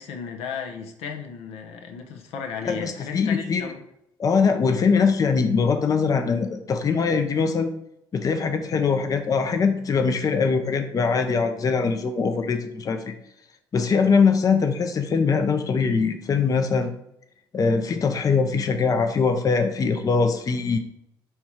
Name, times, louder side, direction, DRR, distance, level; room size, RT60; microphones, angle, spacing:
voice 1, 0.0-3.8, left 6 dB, 75° left, 3 dB, 0.7 m, -35 dB
voice 2, 2.6-3.7 4.2-7.7 8.1-13.1 13.7-16.9 17.5-20.8, left 5 dB, 35° left, 6 dB, 0.5 m, -22 dB
4.5 x 2.3 x 4.2 m, 0.79 s
supercardioid pair, 65°, 10 cm